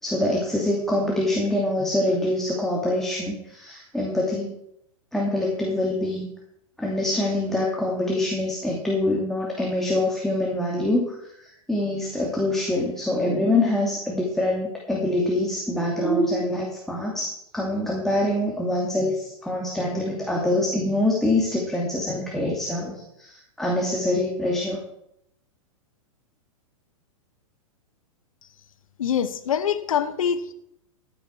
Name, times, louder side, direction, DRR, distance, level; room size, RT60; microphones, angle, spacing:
voice 1, 0.0-4.5 5.1-6.3 6.8-24.8, left 1 dB, ahead, -3 dB, 2.7 m, -25 dB
voice 2, 29.0-30.5, left 8 dB, 75° left, 12 dB, 1.3 m, -24 dB
14.5 x 9.2 x 4.7 m, 0.78 s
hypercardioid pair, 110°, 18 cm